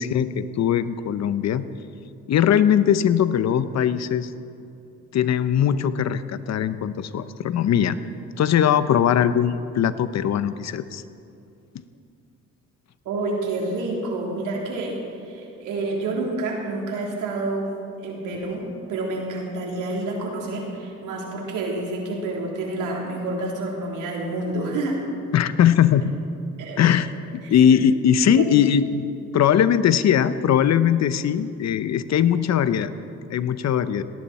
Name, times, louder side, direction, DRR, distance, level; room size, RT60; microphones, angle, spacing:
voice 1, 0.0-1.6 2.3-4.3 5.1-8.0 8.4-11.0 25.3-26.1 26.8-27.1 27.5-29.1 29.3-32.9 33.3-34.0, left 9 dB, 60° left, 13 dB, 0.8 m, -20 dB
voice 2, 13.1-15.0 15.3-17.7 18.0-25.0 26.6-26.8 27.4-27.6 28.3-28.5, right 2 dB, 90° right, -2 dB, 3.7 m, -28 dB
19.0 x 18.0 x 4.3 m, 2.7 s
cardioid pair, 90°, 30 cm